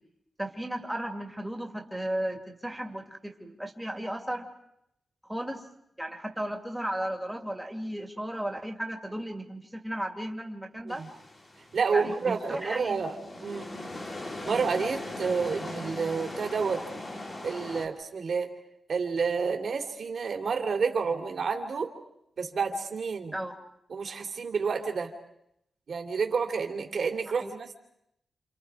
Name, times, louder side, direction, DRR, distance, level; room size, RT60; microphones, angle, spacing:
voice 1, 0.4-4.5 5.3-5.6 6.0-11.0 11.9-13.0 23.3-23.5 27.4-27.5, right 1 dB, 5° right, 3 dB, 2.3 m, -35 dB
sound 1, 10.9-17.9, left 1 dB, 30° left, 2.9 m, -40 dB
voice 2, 11.7-13.2 13.4-13.7 14.4-16.8 17.4-18.5 18.9-21.9 22.4-23.3 23.9-25.1 25.9-27.7, right 5 dB, 55° right, 4 dB, 2.7 m, -29 dB
29.0 x 28.5 x 4.8 m, 0.78 s
wide cardioid pair, 155°, 0 cm